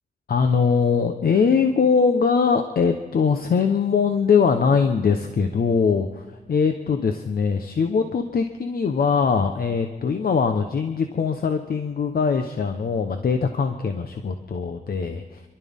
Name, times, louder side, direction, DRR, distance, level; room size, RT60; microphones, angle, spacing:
voice 1, 0.3-15.4, left 5 dB, 60° left, 6 dB, 1.0 m, -22 dB
27.5 x 12.5 x 3.7 m, 1.2 s
wide cardioid pair, 105°, 17 cm